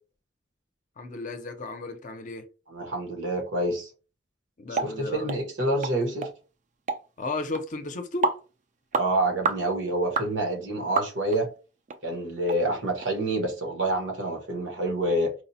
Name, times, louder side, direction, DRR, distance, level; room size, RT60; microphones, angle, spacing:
voice 1, 1.0-2.4 4.6-5.3 7.2-8.3, left 3 dB, 45° left, 0.5 m, -34 dB
voice 2, 2.7-3.9 4.8-6.3 8.9-11.5 12.0-15.3, right 1 dB, 85° right, 1.1 m, -27 dB
sound 1, 4.7-4.9 5.3-5.4 5.8-5.9 6.2-6.3 6.9-7.0 7.5-7.6 8.2-8.4 8.9-9.1 9.4-9.6 10.1-10.3 11.0-11.4 11.9-12.0 12.5-12.6 13.0-13.1, right 5 dB, 40° right, 0.4 m, -27 dB
4.5 x 2.0 x 2.7 m
head